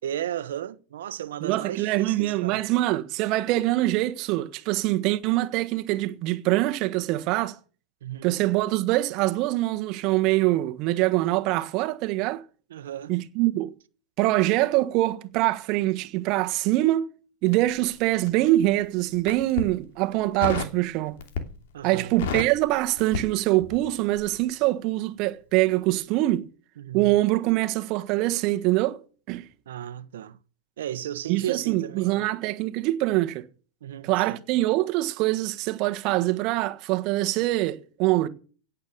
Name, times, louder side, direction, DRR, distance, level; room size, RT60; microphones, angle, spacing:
voice 1, 0.0-2.6 8.0-8.4 12.7-13.2 21.7-22.1 26.8-27.1 29.7-30.4 30.8-32.2 33.8-34.4, right 11 dB, 80° right, 1.2 m, -34 dB
voice 2, 1.4-7.6 8.2-12.4 13.1-13.7 14.2-17.0 17.4-21.2 21.8-26.5 26.9-29.5 31.3-33.5 34.0-38.3, right 17 dB, 45° right, 1.5 m, -24 dB
Crackle, 17.5-18.6 19.1-19.7 20.4-20.8 21.2-21.7 22.0-23.9 24.1-24.4, left 5 dB, 70° left, 2.8 m, -32 dB
17.0 x 8.4 x 7.4 m
hypercardioid pair, 130°, 0 cm